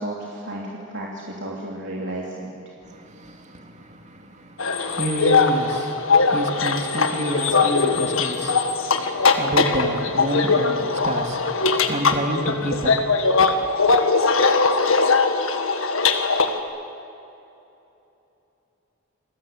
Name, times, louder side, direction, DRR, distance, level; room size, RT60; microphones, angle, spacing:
voice 1, 0.0-2.5, right 1 dB, 55° right, 3.2 m, -32 dB
voice 2, 2.8-13.5, right 1 dB, 35° right, 2.5 m, -29 dB
sound 1, 4.6-16.6, left 4 dB, 75° left, 1.9 m, -20 dB
28.5 x 21.0 x 8.7 m
head